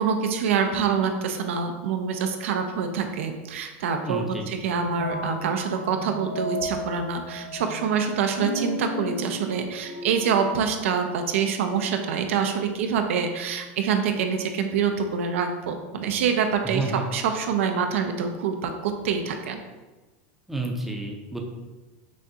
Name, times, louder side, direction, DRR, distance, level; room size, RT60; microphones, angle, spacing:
voice 1, 0.0-19.6, right 6 dB, 85° right, 5 dB, 0.5 m, -26 dB
voice 2, 4.0-4.5 16.6-17.1 20.5-21.4, right 2 dB, 5° right, 0 dB, 0.5 m, -30 dB
sound 1, 4.8-10.5, left 1 dB, 55° left, 1.1 m, -35 dB
6.1 x 2.3 x 2.8 m, 1.2 s
supercardioid pair, 140°, 7 cm